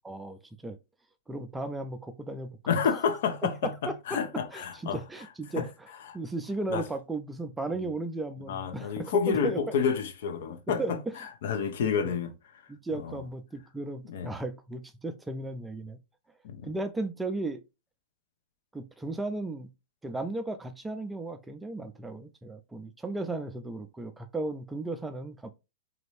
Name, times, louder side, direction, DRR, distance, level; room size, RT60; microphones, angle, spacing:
voice 1, 0.0-0.8 1.3-3.1 3.4-3.9 4.5-5.9 6.1-9.6 10.8-11.1 12.0-12.1 12.7-16.0 16.6-17.6 18.7-19.7 20.0-25.5, right 2 dB, 10° right, 0.4 m, -35 dB
voice 2, 2.7-5.0 5.6-5.7 6.7-6.8 8.5-12.3 13.0-13.2 14.1-14.3 16.4-16.7, left 6 dB, 65° left, 0.7 m, -29 dB
3.0 x 2.5 x 3.2 m
hypercardioid pair, 120°, 0 cm